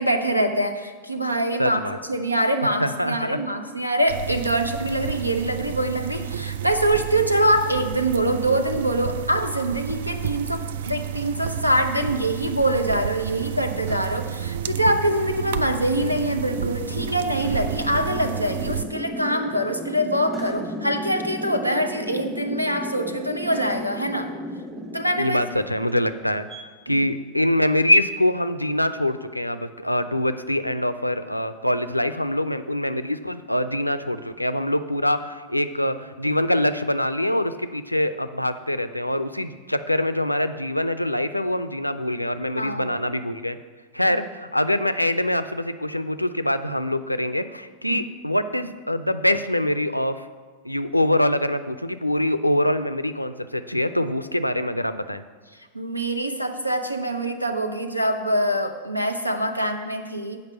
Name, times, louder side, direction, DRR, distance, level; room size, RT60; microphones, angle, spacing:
voice 1, 0.0-1.8 2.1-24.3 24.9-25.4 26.9-27.0 42.6-43.0 47.9-48.0 55.7-60.4, right 1 dB, 90° right, 7 dB, 0.7 m, -24 dB
voice 2, 1.6-2.0 2.6-3.4 25.2-43.6 43.9-50.3 50.6-55.2, left 1 dB, 90° left, 12 dB, 0.4 m, -24 dB
sound 1, 4.1-18.8, right 9 dB, 60° right, 0.3 m, -31 dB
sound 2, 10.8-26.6, right 1 dB, 15° right, 1.0 m, -36 dB
8.1 x 5.2 x 6.8 m, 1.4 s
figure-of-eight pair, 90°, 0 cm